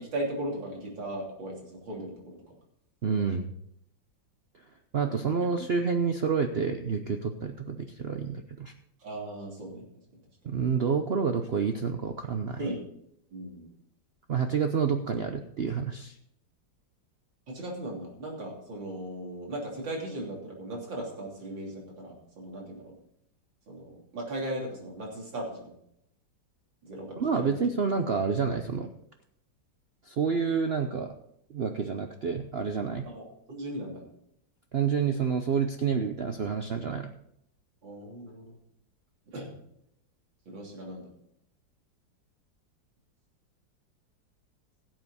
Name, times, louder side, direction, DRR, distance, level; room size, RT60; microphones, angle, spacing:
voice 1, 0.0-2.4 9.0-9.9 10.1-10.5 12.6-12.8 13.3-13.7 17.5-23.0 23.7-25.7 26.8-27.6 33.1-34.0 37.8-38.6 39.3-39.5 40.5-41.1, right 1 dB, 90° right, -2 dB, 3.9 m, -37 dB
voice 2, 3.0-3.5 4.9-8.7 10.4-12.6 14.3-16.1 27.2-28.9 30.1-31.1 31.5-33.1 34.7-37.1, right 6 dB, 65° right, 6 dB, 0.6 m, -28 dB
17.0 x 7.8 x 4.1 m, 0.74 s
omnidirectional pair, 2.0 m